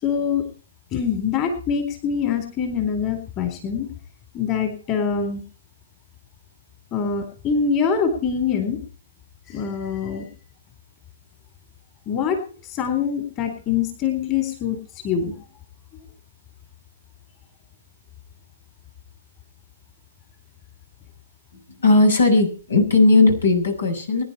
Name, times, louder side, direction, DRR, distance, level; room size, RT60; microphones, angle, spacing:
voice 1, 0.0-0.4 0.9-3.9 4.3-5.4 6.9-8.8 9.5-10.3 12.1-14.8 15.0-15.3, left 6 dB, 30° left, 6 dB, 3.8 m, -24 dB
voice 2, 21.8-24.2, left 3 dB, 75° left, 5 dB, 6.8 m, -17 dB
24.0 x 10.5 x 4.4 m, 0.40 s
figure-of-eight pair, 125°, 0 cm